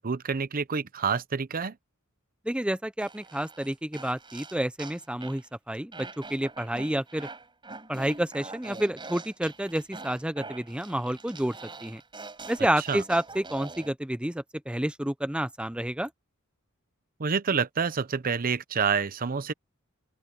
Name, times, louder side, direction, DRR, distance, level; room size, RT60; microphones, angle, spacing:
voice 1, 0.0-1.7 12.9-13.0 17.2-19.5, right 5 dB, 40° right, 0.7 m, -28 dB
voice 2, 2.5-7.3 7.9-11.6 11.8-12.0 12.5-16.1, right 1 dB, 5° right, 0.6 m, -29 dB
sound 1, 3.0-5.4 5.9-13.9, right 3 dB, 25° right, 6.1 m, -44 dB
open air
head